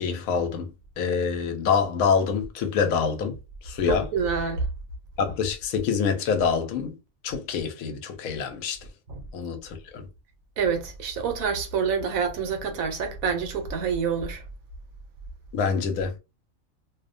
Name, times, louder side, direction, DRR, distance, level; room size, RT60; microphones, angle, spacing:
voice 1, 0.0-3.4 3.6-4.1 5.2-7.0 7.2-8.9 9.3-10.1 15.5-16.2, left 6 dB, 85° left, 1.1 m, -26 dB
voice 2, 3.9-4.7 9.1-9.2 10.6-14.4, right 6 dB, 85° right, 1.1 m, -27 dB
2.6 x 2.1 x 2.5 m
omnidirectional pair, 1.4 m